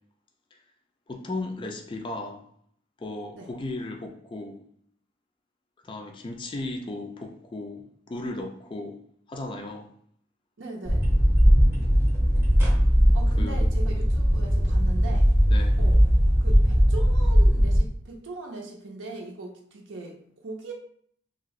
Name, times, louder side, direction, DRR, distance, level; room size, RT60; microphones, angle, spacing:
voice 1, 1.1-2.4 3.0-4.6 5.8-9.0 9.3-9.9 13.4-13.6 15.5-15.8, left 2 dB, 25° left, 2 dB, 0.3 m, -35 dB
voice 2, 10.6-11.0 13.1-15.3 15.8-16.0 16.4-20.7, right 2 dB, 75° right, 0 dB, 0.6 m, -39 dB
sound 1, 10.9-17.8, equal, 10° right, 0.7 m, -19 dB
2.7 x 2.5 x 3.0 m, 0.64 s
head